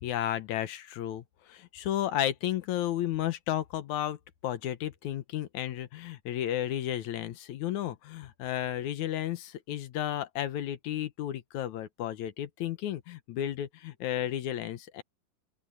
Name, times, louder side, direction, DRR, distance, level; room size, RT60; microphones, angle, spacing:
voice 1, 0.0-4.2 4.4-15.0, left 12 dB, 70° left, 2.1 m, -33 dB
open air
omnidirectional pair, 4.0 m